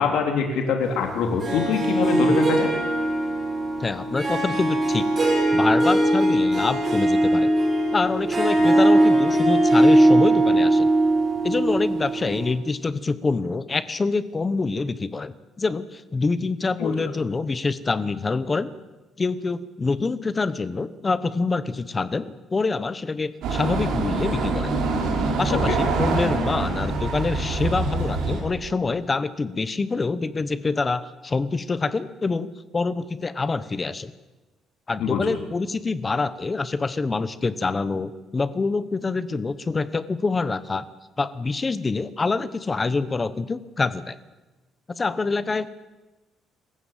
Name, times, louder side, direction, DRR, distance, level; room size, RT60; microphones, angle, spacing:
voice 1, 0.0-2.7 16.8-16.9 25.5-25.8 35.0-35.4, left 5 dB, 75° left, 3 dB, 3.2 m, -24 dB
Harp, 1.4-12.5, right 1 dB, 25° right, 7.0 m, -20 dB
voice 2, 3.8-5.1 5.5-7.5 7.9-10.9 11.4-15.3 15.6-18.7 19.2-24.7 25.4-34.1 34.9-40.8 41.2-44.2 44.9-45.7, left 4 dB, 20° left, 14 dB, 1.0 m, -26 dB
sound 1, 23.4-28.4, right 3 dB, 70° right, 5.9 m, -25 dB
26.0 x 15.0 x 7.5 m, 1.1 s
cardioid pair, 160°, 0 cm